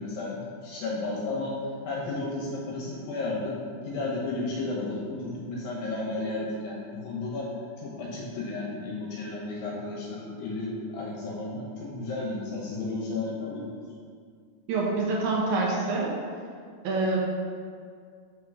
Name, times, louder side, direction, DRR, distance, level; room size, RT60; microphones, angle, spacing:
voice 1, 0.0-1.5 1.8-3.5 3.8-7.5 7.8-13.7, left 2 dB, 75° left, -4 dB, 2.4 m, -33 dB
voice 2, 14.7-16.1 16.8-17.2, right 3 dB, 80° right, -4 dB, 1.8 m, -26 dB
6.0 x 3.8 x 6.0 m, 2.1 s
omnidirectional pair, 4.7 m